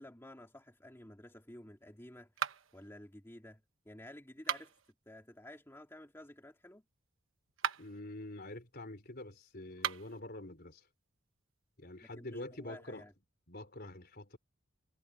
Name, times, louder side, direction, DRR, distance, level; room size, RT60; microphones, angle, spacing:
voice 1, 0.0-4.7 5.1-6.8 12.2-13.1, left 1 dB, 10° left, 2.2 m, -53 dB
sound 1, 2.4-2.9 4.3-4.9 7.5-8.0 9.7-10.2, right 8 dB, 65° right, 1.1 m, -38 dB
voice 2, 7.8-10.9 11.8-13.0 13.5-14.4, left 1 dB, 45° left, 4.1 m, -46 dB
head